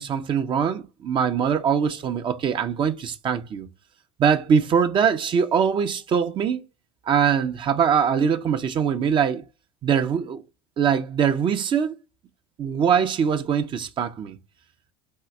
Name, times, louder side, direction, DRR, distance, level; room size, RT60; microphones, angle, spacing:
voice 1, 0.0-3.7 4.2-6.6 7.1-9.4 9.8-10.4 10.8-12.0 12.6-14.4, right 7 dB, 35° right, 0.6 m, -22 dB
4.1 x 3.7 x 3.1 m
hypercardioid pair, 85°, 14 cm